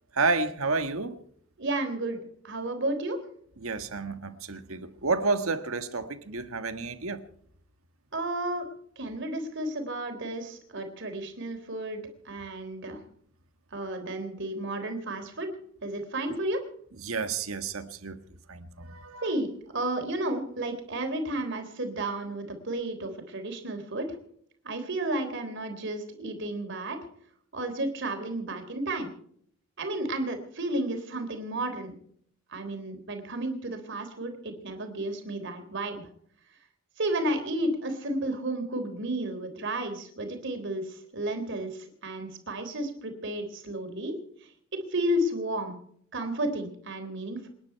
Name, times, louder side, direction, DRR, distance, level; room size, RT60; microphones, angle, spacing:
voice 1, 0.1-1.2 3.6-7.2 16.3-16.4 17.0-18.2 18.5-19.3, right 4 dB, 85° right, 1.6 m, -30 dB
voice 2, 1.6-2.2 2.4-3.2 8.1-8.7 9.0-13.0 13.7-15.5 15.8-16.6 19.2-19.5 19.7-24.1 24.6-27.0 27.5-29.1 29.8-31.9 32.5-36.0 37.0-44.2 44.7-45.8 46.1-47.5, right 1 dB, 60° right, 3.6 m, -32 dB
28.0 x 10.5 x 4.6 m
head